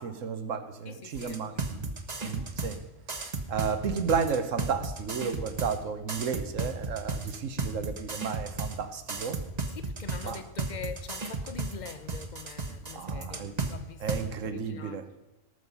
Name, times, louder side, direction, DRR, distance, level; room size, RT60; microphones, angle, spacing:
voice 1, 0.0-1.9 2.2-2.8 3.5-9.4 10.2-10.4 12.9-13.5 14.0-15.1, right 6 dB, 75° right, 1.3 m, -33 dB
voice 2, 0.8-1.6 9.7-15.0, left 6 dB, 40° left, 0.9 m, -44 dB
sound 1, 1.1-2.8 3.1-5.8 6.1-8.8 9.1-13.7 14.1-14.2, right 3 dB, 35° right, 1.3 m, -33 dB
19.0 x 6.5 x 5.4 m
omnidirectional pair, 1.4 m